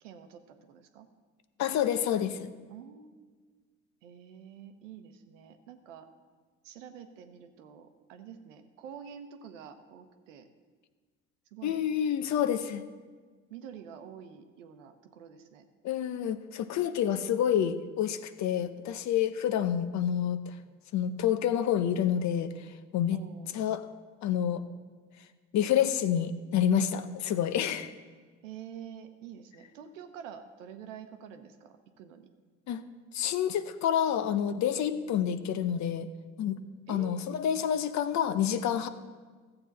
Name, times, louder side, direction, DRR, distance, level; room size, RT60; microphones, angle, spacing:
voice 1, 0.0-1.1 2.7-3.3 4.0-6.1 6.6-10.5 11.5-11.8 13.5-15.6 23.1-23.5 28.4-32.3 36.9-37.3, right 8 dB, 85° right, 7 dB, 0.9 m, -47 dB
voice 2, 1.6-2.5 11.6-12.8 15.8-20.6 20.9-23.2 23.5-23.8 24.2-24.6 25.5-27.9 32.7-32.8 33.1-36.1 36.4-36.6 36.9-38.9, left 9 dB, 50° left, 12 dB, 0.7 m, -28 dB
14.0 x 7.8 x 4.1 m, 1.5 s
hypercardioid pair, 65°, 37 cm